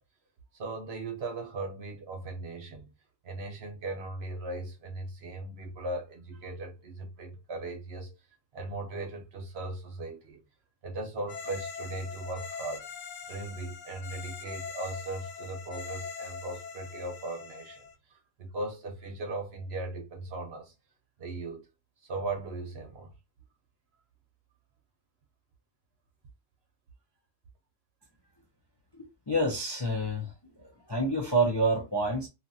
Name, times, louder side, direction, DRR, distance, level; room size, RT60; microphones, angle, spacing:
voice 1, 0.5-2.9 3.2-8.1 8.5-10.4 10.8-12.8 13.3-20.7 21.2-21.7 22.0-23.1, right 2 dB, 60° right, 1.0 m, -38 dB
sound 1, 11.3-17.9, left 6 dB, 70° left, 0.9 m, -42 dB
voice 2, 28.9-30.3 30.9-32.3, right 1 dB, 30° left, 0.5 m, -28 dB
2.8 x 2.4 x 2.6 m
omnidirectional pair, 1.3 m